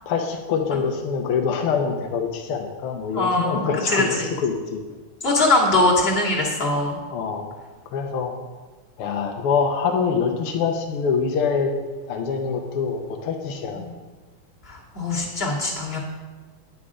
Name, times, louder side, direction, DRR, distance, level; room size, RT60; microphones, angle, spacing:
voice 1, 0.1-4.8 7.1-7.5 7.9-8.3 9.0-11.7 12.1-13.8, left 6 dB, 85° left, 3 dB, 1.8 m, -25 dB
voice 2, 3.1-4.0 5.2-7.0 13.8-13.9 14.7-16.0, left 2 dB, 25° left, -3 dB, 2.4 m, -21 dB
10.0 x 9.6 x 4.9 m, 1.3 s
omnidirectional pair, 2.4 m